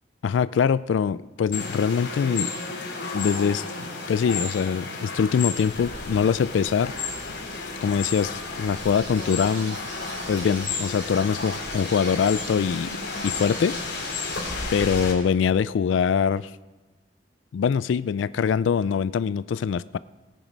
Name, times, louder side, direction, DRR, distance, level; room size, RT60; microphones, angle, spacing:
voice 1, 0.2-2.5 3.1-6.9 7.8-9.8 10.3-12.9 13.2-13.8 14.7-16.5 17.5-20.0, left 6 dB, 85° left, 17 dB, 0.3 m, -23 dB
sound 1, 1.5-15.1, left 4 dB, 70° left, 3.0 m, -33 dB
sound 2, 5.6-15.2, equal, 40° left, 2.7 m, -44 dB
sound 3, 8.4-15.1, right 6 dB, 70° right, 1.4 m, -44 dB
17.5 x 9.2 x 5.2 m, 1.2 s
head